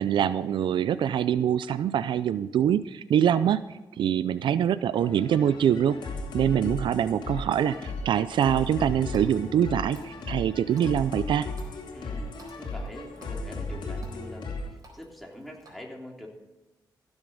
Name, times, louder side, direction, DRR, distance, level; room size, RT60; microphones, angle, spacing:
voice 1, 0.0-3.6 4.0-6.0 6.3-11.5, right 9 dB, 80° right, 15 dB, 0.4 m, -24 dB
sound 1, 5.0-14.7, left 2 dB, 75° left, 2.5 m, -36 dB
Water tap faucet, 7.6-15.7, right 2 dB, 50° right, 4.0 m, -57 dB
voice 2, 11.9-16.3, equal, ahead, -1 dB, 3.2 m, -44 dB
16.0 x 7.2 x 5.3 m, 1.1 s
cardioid pair, 70°, 8 cm